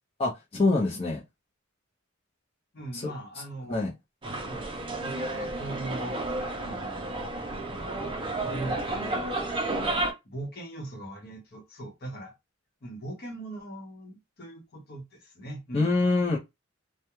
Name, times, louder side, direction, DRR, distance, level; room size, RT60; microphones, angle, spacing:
voice 1, 0.2-1.2 2.9-3.0 3.7-3.9 15.7-16.4, left 3 dB, 30° left, 0.5 m, -25 dB
voice 2, 2.7-3.9 4.2-4.7 5.0-6.2 6.6-7.2 8.4-9.5 10.2-12.3 12.8-15.9, right 1 dB, 50° left, 0.9 m, -40 dB
sound 1, 4.2-10.1, right 2 dB, 25° right, 0.5 m, -31 dB
2.3 x 2.1 x 2.9 m
head